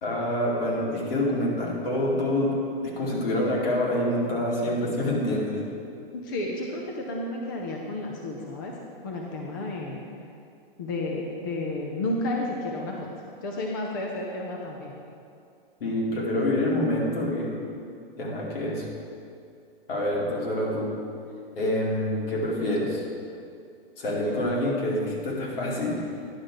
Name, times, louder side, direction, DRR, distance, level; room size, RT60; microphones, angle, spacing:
voice 1, 0.0-5.6 15.8-17.5 18.2-18.9 19.9-20.9 21.6-23.0 24.0-26.0, left 1 dB, 70° left, -3 dB, 2.5 m, -26 dB
voice 2, 6.1-8.7 9.0-10.0 10.8-13.0 13.4-14.9, left 2 dB, 20° left, 0 dB, 0.5 m, -32 dB
10.5 x 6.2 x 4.9 m, 2.5 s
hypercardioid pair, 170°, 30 cm